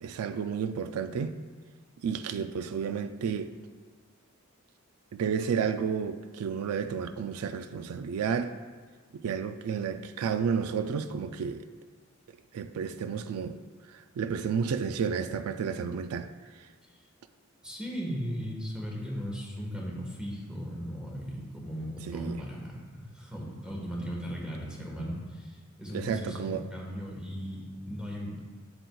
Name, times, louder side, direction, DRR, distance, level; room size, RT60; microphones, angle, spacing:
voice 1, 0.0-1.4 2.0-3.5 5.1-8.5 9.1-11.6 12.5-13.6 14.2-16.3 22.1-22.4 25.9-26.6, right 6 dB, 85° right, 9 dB, 0.3 m, -31 dB
voice 2, 17.6-28.4, equal, 5° right, -3 dB, 1.4 m, -37 dB
7.8 x 7.8 x 2.3 m, 1.5 s
head